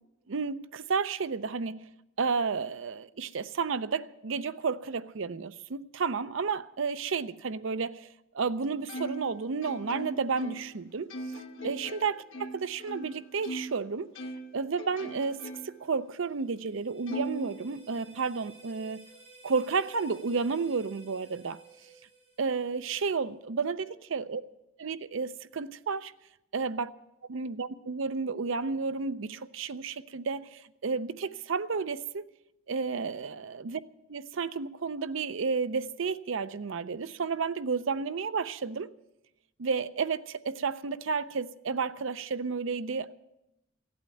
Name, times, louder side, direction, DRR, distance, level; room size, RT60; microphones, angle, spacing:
voice 1, 0.3-1.8 2.2-8.1 8.3-11.1 11.6-14.1 14.5-19.1 19.4-21.6 22.4-24.4 24.8-26.1 26.5-26.9 27.3-32.3 32.7-33.8 34.1-38.9 39.6-43.2, right 5 dB, 65° right, 0.5 m, -32 dB
Plucked string instrument, 8.9-13.8 14.1-15.9 16.3-16.4 17.1-18.2, right 1 dB, 70° left, 1.3 m, -40 dB
sound 1, 16.0-23.1, right 4 dB, 35° right, 6.3 m, -55 dB
15.5 x 8.6 x 9.0 m
head